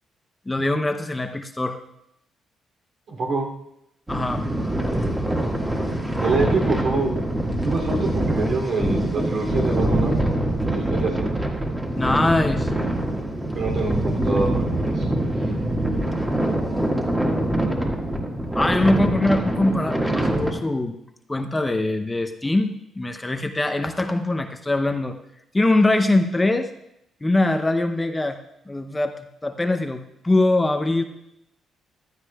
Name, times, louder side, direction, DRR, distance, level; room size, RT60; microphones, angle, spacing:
voice 1, 0.5-1.8 4.1-4.4 12.0-12.7 18.6-20.9 21.3-25.2 25.5-26.7 27.2-28.4 28.7-31.0, left 2 dB, 15° left, 7 dB, 0.6 m, -22 dB
voice 2, 3.1-3.5 6.2-7.4 7.6-10.3 10.7-11.3 13.5-15.1 15.4-15.5, right 3 dB, 60° right, 0 dB, 2.9 m, -26 dB
sound 1, 4.1-20.5, right 1 dB, 10° right, 1.7 m, -24 dB
15.0 x 12.0 x 2.3 m, 0.80 s
cardioid pair, 90°, 0 cm